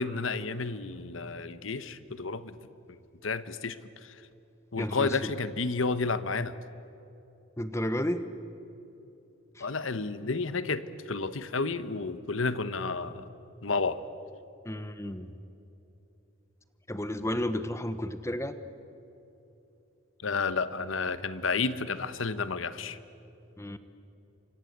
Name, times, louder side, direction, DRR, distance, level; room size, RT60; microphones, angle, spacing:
voice 1, 0.0-2.6 3.2-3.8 4.0-4.2 4.7-6.5 9.6-13.3 13.6-14.0 20.2-23.0, left 4 dB, 85° left, 13 dB, 1.1 m, -31 dB
voice 2, 4.8-5.3 7.6-8.3 9.5-9.7 14.6-15.3 16.9-18.6 23.6-23.8, left 1 dB, 15° left, 11 dB, 1.1 m, -32 dB
29.0 x 25.0 x 8.2 m, 2.9 s
head